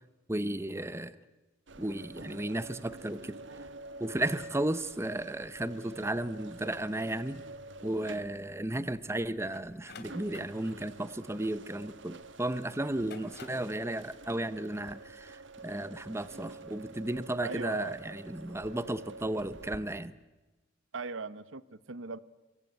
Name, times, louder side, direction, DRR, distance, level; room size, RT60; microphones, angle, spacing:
voice 1, 0.3-1.2 1.8-3.4 4.0-7.4 7.8-20.1, right 1 dB, 15° right, 15 dB, 0.8 m, -34 dB
sound 1, 1.7-19.8, right 2 dB, 70° right, 1.5 m, -48 dB
sound 2, 9.5-12.2 12.9-13.8, left 3 dB, 60° left, 3.2 m, -51 dB
voice 2, 17.4-18.0 20.9-22.2, right 4 dB, 90° right, 16 dB, 1.0 m, -39 dB
25.5 x 23.0 x 9.2 m, 1.2 s
head